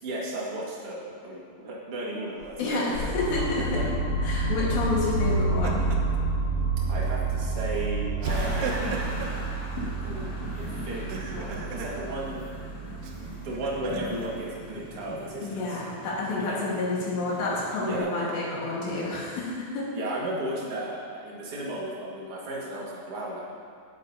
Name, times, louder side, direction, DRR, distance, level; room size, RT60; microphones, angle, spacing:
voice 1, 0.0-3.1 3.6-3.8 4.2-4.4 6.9-8.9 10.0-12.5 13.2-15.9 16.4-16.6 17.8-18.3 19.9-23.4, right 1 dB, 50° right, -5 dB, 1.8 m, -35 dB
Laughter, 2.4-2.9 5.2-6.2 6.6-6.8 8.2-9.4 10.9-12.0 13.0-14.3, right 4 dB, 80° right, 2.5 m, -36 dB
voice 2, 2.6-3.8 4.2-5.9 15.4-19.9, left 3 dB, 70° left, -5 dB, 3.7 m, -29 dB
sound 1, 2.9-14.9, right 3 dB, 85° left, 1.9 m, -29 dB
sound 2, 8.2-18.0, left 2 dB, 45° left, 3.1 m, -39 dB
18.5 x 8.8 x 2.9 m, 2.2 s
omnidirectional pair, 5.5 m